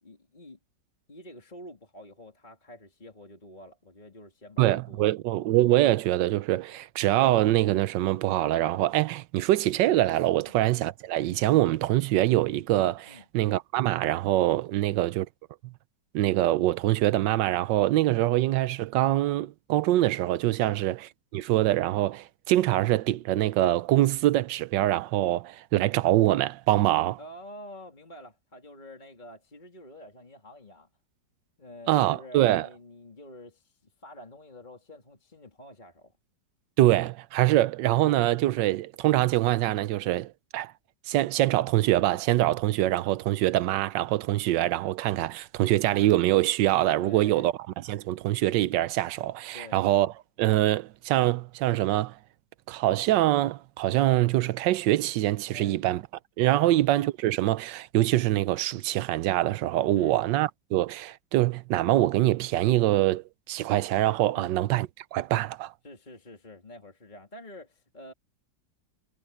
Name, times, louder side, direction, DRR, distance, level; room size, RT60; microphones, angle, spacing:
voice 1, 0.0-0.6 1.1-5.2 6.7-6.8 10.4-10.6 13.0-13.3 14.7-14.9 20.6-20.8 27.2-30.9 31.6-36.1 47.0-47.5 49.5-49.8 55.5-55.8 56.6-56.7 60.0-60.1 64.3-64.5 65.8-68.1, left 1 dB, 25° left, 3.0 m, -47 dB
voice 2, 4.6-15.3 15.6-15.7 16.1-27.2 31.9-32.7 36.8-40.7 41.1-47.5 47.9-50.1 50.4-52.1 52.7-56.0 56.4-65.7, right 15 dB, 80° right, 1.3 m, -24 dB
omnidirectional pair, 1.9 m